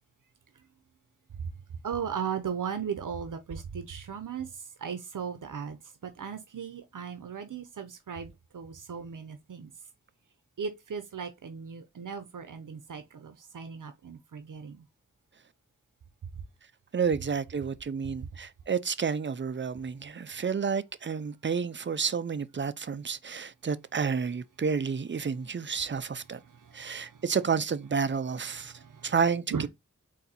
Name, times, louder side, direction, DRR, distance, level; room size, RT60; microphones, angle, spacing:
voice 1, 1.8-4.5 4.8-5.8 6.0-9.7 10.6-14.8 26.4-27.2 28.6-29.1 29.5-29.7, right 7 dB, 85° right, 0.6 m, -37 dB
voice 2, 16.9-26.4 26.7-28.7 29.0-29.7, right 6 dB, 40° right, 0.4 m, -30 dB
4.2 x 2.6 x 4.0 m
wide cardioid pair, 55°, 31 cm